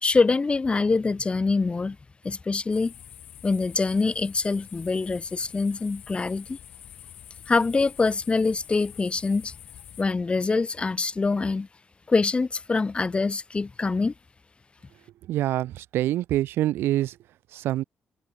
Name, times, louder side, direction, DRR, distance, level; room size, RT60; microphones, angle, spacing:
voice 1, 0.0-2.0 2.2-2.9 3.4-6.6 7.5-9.5 10.0-11.7 12.1-14.1, left 4 dB, 30° left, 2.8 m, -24 dB
sound 1, 2.7-10.0, left 11 dB, 75° left, 4.8 m, -46 dB
voice 2, 15.3-17.1 17.5-17.8, right 14 dB, 85° right, 0.6 m, -25 dB
cardioid pair, 80°, 4 cm